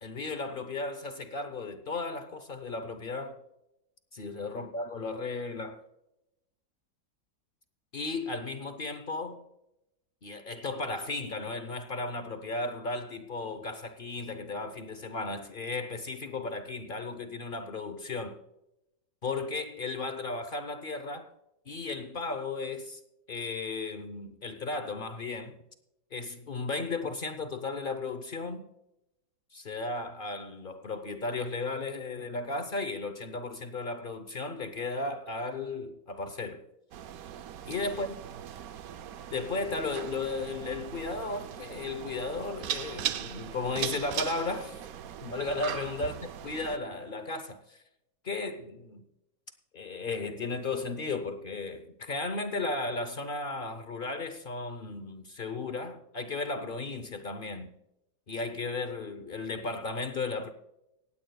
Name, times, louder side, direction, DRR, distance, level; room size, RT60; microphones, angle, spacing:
voice 1, 0.0-3.4 4.1-5.8 7.9-9.4 10.2-18.4 19.2-21.3 21.7-23.0 23.3-25.5 26.1-28.7 29.5-36.6 37.7-38.1 39.3-44.8 45.2-46.1 46.4-47.8 48.2-49.0 49.7-57.7 58.3-60.5, left 3 dB, 45° left, 0.7 m, -35 dB
sound 1, 36.9-46.8, right 10 dB, 65° right, 1.0 m, -39 dB
18.0 x 16.0 x 2.3 m
omnidirectional pair, 1.8 m